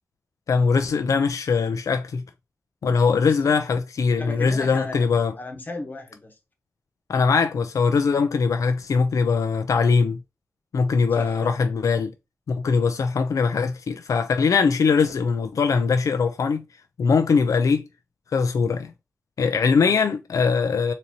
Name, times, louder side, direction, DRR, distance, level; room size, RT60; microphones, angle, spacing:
voice 1, 0.5-2.2 2.8-5.3 7.1-10.2 10.7-12.1 12.5-16.6 17.0-17.8 18.3-18.9 19.4-20.9, left 5 dB, 90° left, 0.5 m, -21 dB
voice 2, 3.2-3.5 4.1-5.0 5.3-6.4 11.2-11.5 19.8-20.0, left 2 dB, 30° left, 1.1 m, -36 dB
4.0 x 2.7 x 2.9 m
wide cardioid pair, 120°, 6 cm